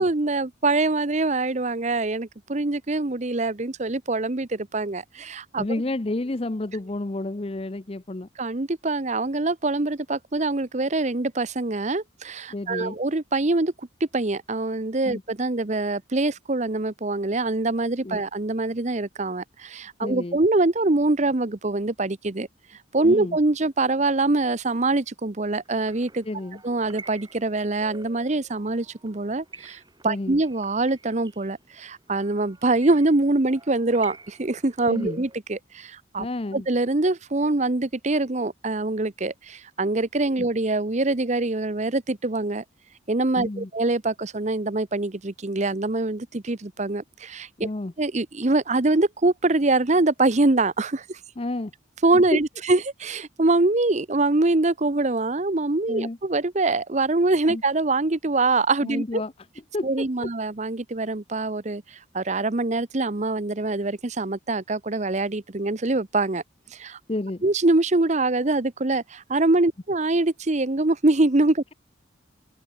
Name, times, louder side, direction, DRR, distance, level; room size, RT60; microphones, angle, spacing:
voice 1, 0.0-5.7 8.4-13.7 14.1-22.5 22.9-26.2 26.6-36.3 36.5-42.6 43.1-47.7 48.0-51.2 52.0-59.2 59.8-66.4 66.7-67.0 67.4-71.6, right 2 dB, 35° right, 0.9 m, -24 dB
voice 2, 5.6-8.3 12.5-13.0 15.0-15.2 18.0-18.3 20.0-20.4 23.0-23.4 26.2-26.6 30.0-30.4 34.9-35.2 36.2-36.7 43.4-43.7 47.6-47.9 51.4-51.7 52.3-52.4 55.9-56.2 57.5-57.6 58.8-59.3 59.7-60.3 67.1-67.4, left 2 dB, 30° left, 0.7 m, -30 dB
sound 1, 25.6-35.4, right 3 dB, 20° right, 7.9 m, -48 dB
open air
head